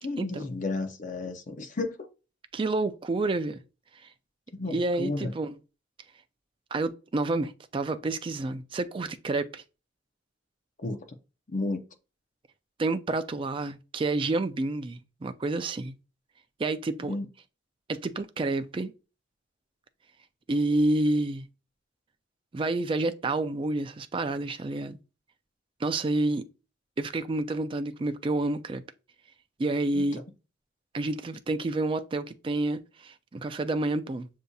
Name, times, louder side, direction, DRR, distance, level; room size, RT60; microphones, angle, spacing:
voice 1, 0.0-2.1 4.5-5.3 10.8-11.0 11.5-11.8 17.0-17.3 29.9-30.1, left 2 dB, 40° left, 0.6 m, -32 dB
voice 2, 2.5-3.6 4.7-5.6 6.7-9.6 12.8-16.0 16.6-17.1 17.9-18.9 20.5-21.5 22.5-25.0 25.8-26.5 27.0-28.8 29.6-30.2 30.9-34.3, right 2 dB, 25° right, 0.3 m, -29 dB
6.5 x 2.7 x 2.3 m
head